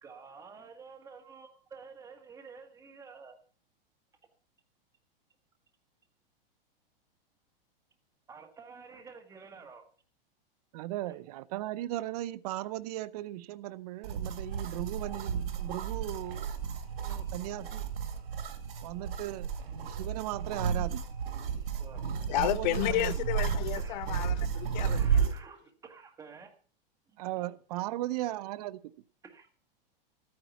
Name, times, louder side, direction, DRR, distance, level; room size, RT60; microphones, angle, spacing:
voice 1, 0.0-3.4 8.3-9.8 17.1-17.2 21.8-22.0 22.8-23.1 23.7-24.0 24.7-26.5 27.4-27.5 29.2-29.5, right 5 dB, 10° right, 1.5 m, -50 dB
voice 2, 10.7-16.5 17.0-17.9 18.8-19.5 19.8-21.0 22.1-23.1 27.2-28.8, right 15 dB, 45° right, 0.5 m, -37 dB
sound 1, 14.0-25.4, right 7 dB, 85° right, 2.3 m, -33 dB
voice 3, 22.3-25.2, left 15 dB, 50° left, 0.7 m, -32 dB
13.5 x 9.5 x 5.7 m
supercardioid pair, 155°, 29 cm